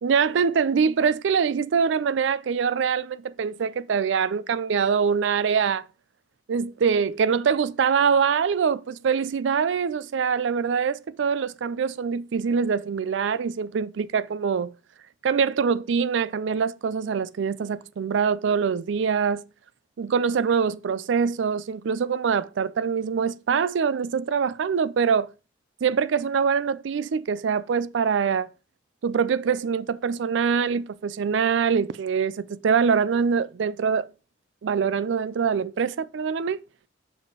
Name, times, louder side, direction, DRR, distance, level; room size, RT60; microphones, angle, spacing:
voice 1, 0.0-5.9 6.5-14.7 15.2-19.4 20.0-25.3 25.8-28.5 29.0-34.1 34.6-36.6, right 6 dB, 75° right, 0.4 m, -24 dB
6.3 x 4.9 x 4.7 m
head